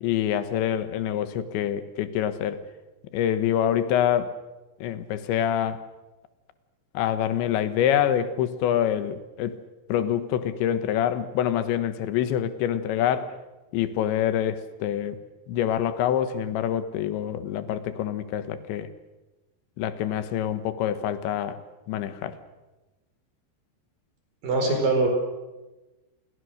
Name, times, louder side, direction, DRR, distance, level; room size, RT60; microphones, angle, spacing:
voice 1, 0.0-2.6 3.1-4.4 4.8-5.8 7.0-9.6 9.9-13.4 13.7-15.2 15.5-18.9 19.8-21.6 21.9-22.4, left 10 dB, 90° left, 12 dB, 3.6 m, -26 dB
voice 2, 24.4-25.1, right 3 dB, 50° right, 4 dB, 6.2 m, -22 dB
29.5 x 22.5 x 6.5 m, 1.1 s
omnidirectional pair, 5.0 m